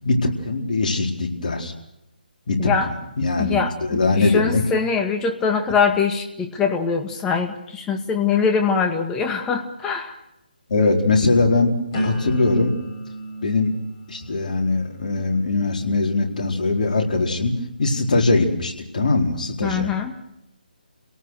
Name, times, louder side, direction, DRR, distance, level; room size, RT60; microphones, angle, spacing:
voice 1, 0.0-1.7 2.5-2.7 3.2-3.5 3.9-4.6 10.7-11.7 12.0-12.7 13.4-13.7 14.1-17.5 17.8-19.9, left 3 dB, 55° left, 1 dB, 4.4 m, -21 dB
voice 2, 3.4-10.2 19.6-20.2, left 6 dB, 10° left, 5 dB, 2.0 m, -23 dB
sound 1, 11.9-17.8 18.3-18.7, right 1 dB, 30° left, 7.8 m, -35 dB
29.5 x 18.5 x 6.5 m, 0.88 s
figure-of-eight pair, 150°, 5 cm